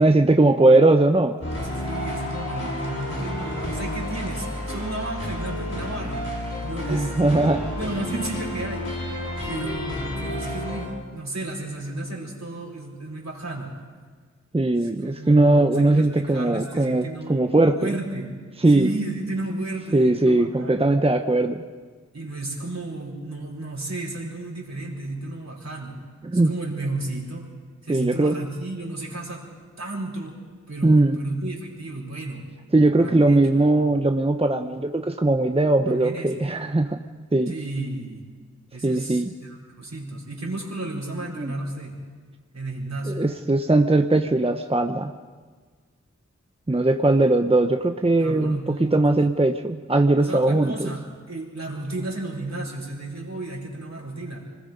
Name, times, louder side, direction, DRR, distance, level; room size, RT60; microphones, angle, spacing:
voice 1, 0.0-1.4 6.9-7.7 14.5-18.0 18.6-18.9 19.9-21.7 26.3-26.5 27.9-28.4 30.8-31.2 32.7-37.0 37.3-37.5 38.8-39.3 41.4-41.5 43.1-45.1 46.7-50.9, right 2 dB, 20° right, 6 dB, 0.8 m, -20 dB
sound 1, 1.4-10.9, left 1 dB, 55° left, 7.4 m, -31 dB
voice 2, 1.6-6.3 6.6-7.1 7.4-8.9 9.4-13.7 14.8-17.5 17.7-18.3 18.7-20.9 22.1-26.0 26.4-27.5 27.8-29.5 29.8-30.4 30.7-32.5 33.0-33.4 33.7-33.9 35.9-36.4 37.5-38.2 38.7-42.0 42.5-43.2 48.2-49.2 50.2-51.0 51.3-54.5, right 2 dB, 65° right, -3 dB, 4.9 m, -33 dB
25.5 x 20.5 x 5.3 m, 1.6 s
wide cardioid pair, 45°, 29 cm